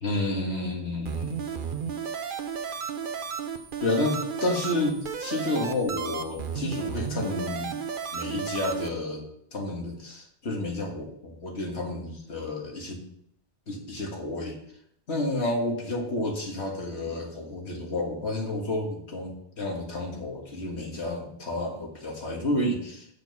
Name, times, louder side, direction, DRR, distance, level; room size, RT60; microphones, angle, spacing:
voice 1, 0.0-1.4 3.8-7.7 8.1-9.3 9.5-13.0 13.7-14.6 15.1-23.1, left 1 dB, 75° left, 0 dB, 2.1 m, -30 dB
sound 1, 1.0-8.9, right 7 dB, 55° right, 0.9 m, -33 dB
7.8 x 6.6 x 5.4 m, 0.73 s
omnidirectional pair, 1.1 m